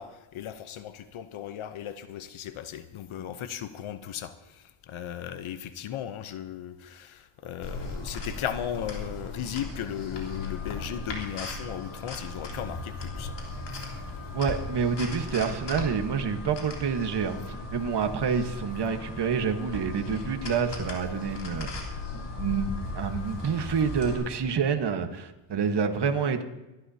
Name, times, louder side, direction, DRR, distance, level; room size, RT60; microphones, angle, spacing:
voice 1, 0.0-13.4, left 10 dB, 75° left, 11 dB, 0.9 m, -36 dB
sound 1, 7.6-24.1, left 3 dB, 55° left, 3.5 m, -37 dB
Alarm, 10.2-24.3, left 5 dB, 25° left, 1.4 m, -49 dB
voice 2, 14.3-21.7 22.4-26.4, right 6 dB, 55° right, 6 dB, 1.4 m, -28 dB
25.0 x 11.5 x 2.8 m, 1.0 s
cardioid pair, 95°, 49 cm